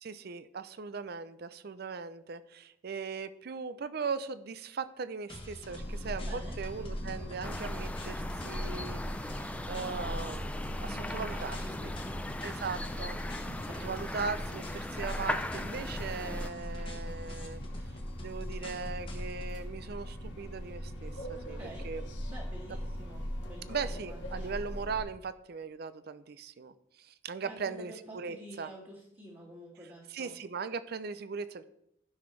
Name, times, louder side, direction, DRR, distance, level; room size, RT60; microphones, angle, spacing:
voice 1, 0.0-10.5 10.8-11.6 12.4-13.4 13.8-17.6 18.2-21.6 21.8-22.0 23.7-28.7 30.1-31.6, right 5 dB, 55° right, 13 dB, 0.5 m, -39 dB
sound 1, 5.3-19.5, left 1 dB, 30° left, 1.3 m, -47 dB
sound 2, 5.6-25.0, equal, 65° left, 1.6 m, -40 dB
voice 2, 6.2-6.6 10.8-12.2 13.4-13.9 21.6-21.9 22.3-24.5 27.4-30.3, right 1 dB, 30° right, -8 dB, 1.9 m, -49 dB
sound 3, 7.4-16.5, left 1 dB, 5° left, 0.4 m, -39 dB
15.0 x 6.1 x 3.2 m, 0.76 s
head